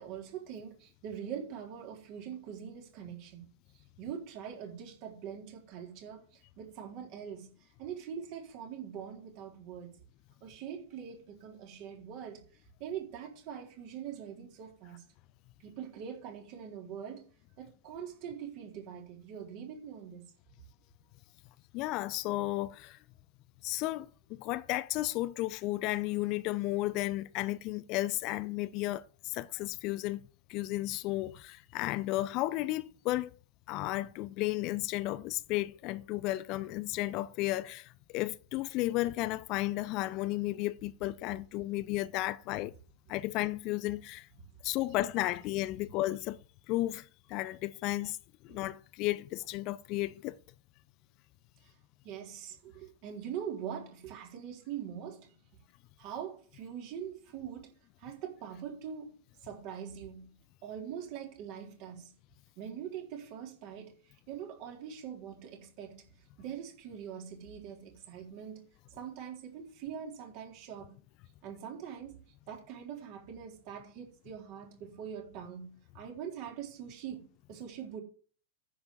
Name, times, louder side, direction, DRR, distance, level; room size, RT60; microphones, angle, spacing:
voice 1, 0.0-3.4 4.0-10.0 10.4-15.0 15.6-17.3 17.6-20.3 44.9-45.0 48.5-48.6 51.6-51.7 52.0-55.4 56.0-57.7 58.0-59.1 59.4-60.3 60.6-62.1 62.6-64.0 64.3-66.1 66.4-68.7 68.9-71.0 71.4-78.0, right 8 dB, 45° right, 3.9 m, -43 dB
voice 2, 21.7-23.0 23.6-30.2 30.5-33.3 33.7-42.7 43.1-44.3 44.6-46.4 46.7-48.2 48.4-50.4, left 17 dB, 40° left, 0.6 m, -33 dB
10.0 x 7.4 x 7.7 m
figure-of-eight pair, 90°, 0 cm